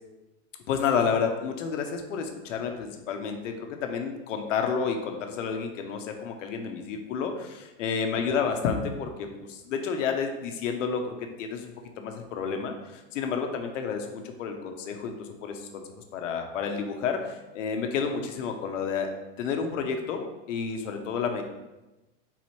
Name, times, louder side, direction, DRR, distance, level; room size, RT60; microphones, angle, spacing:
voice 1, 0.7-11.7 12.0-15.8 16.1-19.1 19.4-21.4, left 6 dB, 75° left, 4 dB, 0.8 m, -30 dB
4.3 x 3.9 x 3.1 m, 1.0 s
supercardioid pair, 160°, 37 cm